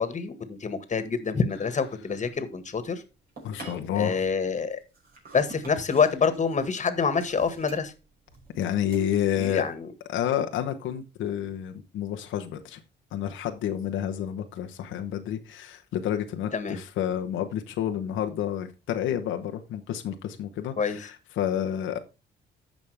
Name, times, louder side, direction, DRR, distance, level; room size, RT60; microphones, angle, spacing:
voice 1, 0.0-3.0 4.0-4.8 5.3-7.9 9.4-9.9 16.5-16.8 20.8-21.0, left 5 dB, 35° left, 1.7 m, -26 dB
sound 1, 2.1-9.7, right 3 dB, 50° right, 5.3 m, -49 dB
voice 2, 3.4-4.2 8.5-9.6 10.1-12.8 13.1-22.0, left 10 dB, 85° left, 1.0 m, -29 dB
14.5 x 5.2 x 3.4 m
cardioid pair, 90°, 20 cm